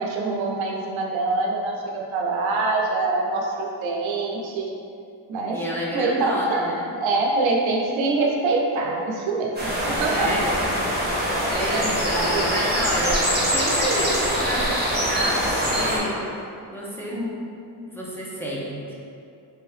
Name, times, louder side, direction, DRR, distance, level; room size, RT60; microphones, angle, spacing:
voice 1, 0.0-4.7 5.3-5.6 5.9-9.5 9.8-10.4 11.7-11.9 12.1-12.4 17.1-17.3 17.7-17.9, right 3 dB, 85° right, -1 dB, 0.6 m, -25 dB
voice 2, 5.5-6.9 10.1-10.5 11.1-13.2 13.5-16.4 16.7-17.2 17.9-19.0, equal, 5° left, -6 dB, 0.7 m, -30 dB
sound 1, 9.6-16.0, equal, 20° right, 1.0 m, -23 dB
3.4 x 2.7 x 3.2 m, 2.5 s
cardioid pair, 75°, 45 cm